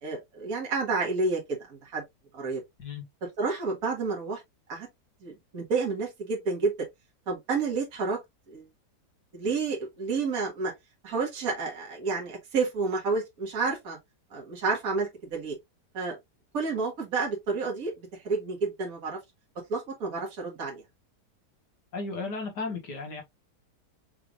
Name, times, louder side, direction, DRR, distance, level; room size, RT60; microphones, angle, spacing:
voice 1, 0.0-2.0 2.3-2.6 3.4-4.4 4.7-4.9 5.2-6.7 7.3-8.2 8.5-8.7 9.3-10.7 11.0-14.0 14.3-15.6 15.9-16.2 16.5-19.2 19.7-20.8, right 4 dB, 60° right, 2.1 m, -30 dB
voice 2, 21.9-23.2, left 4 dB, 85° left, 2.2 m, -34 dB
5.8 x 3.4 x 2.4 m
omnidirectional pair, 1.8 m